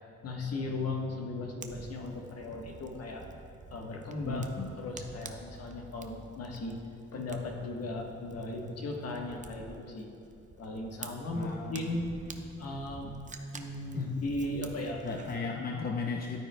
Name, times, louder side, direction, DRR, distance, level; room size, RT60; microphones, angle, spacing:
voice 1, 0.2-3.2 3.7-6.8 7.1-10.1 10.6-12.1 12.6-13.1 13.5-15.0, left 2 dB, 55° left, 1 dB, 1.3 m, -37 dB
Fire, 1.6-15.4, right 4 dB, 25° right, 0.6 m, -50 dB
voice 2, 4.2-4.7 11.3-12.0 12.3-12.4 13.9-14.1 15.0-16.4, left 4 dB, 30° left, 1 dB, 0.7 m, -36 dB
12.0 x 9.1 x 2.3 m, 2.6 s
cardioid pair, 90°, 30 cm